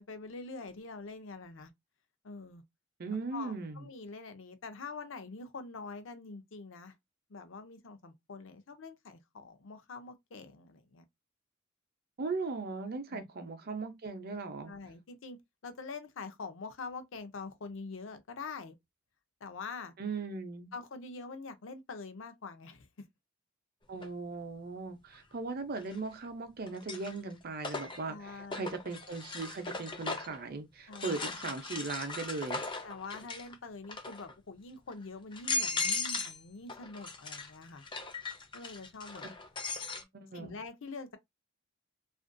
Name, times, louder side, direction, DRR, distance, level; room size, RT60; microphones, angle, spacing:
voice 1, 0.0-1.7 2.2-2.6 3.3-6.9 7.3-11.0 13.1-13.3 14.7-18.8 19.4-19.9 20.7-23.1 28.1-28.8 30.9-31.4 32.8-37.8 38.5-39.3 40.3-41.2, left 4 dB, 70° left, 0.6 m, -45 dB
voice 2, 3.0-3.9 12.2-14.7 20.0-20.7 23.9-32.6 40.1-40.6, right 3 dB, 50° right, 0.6 m, -38 dB
sound 1, 24.0-24.1 25.8-26.3 26.7-30.4 30.9-33.5 33.8-34.3 34.9-35.0 35.3-36.4 36.7-40.0, left 4 dB, 25° left, 0.4 m, -38 dB
2.5 x 2.2 x 2.5 m
head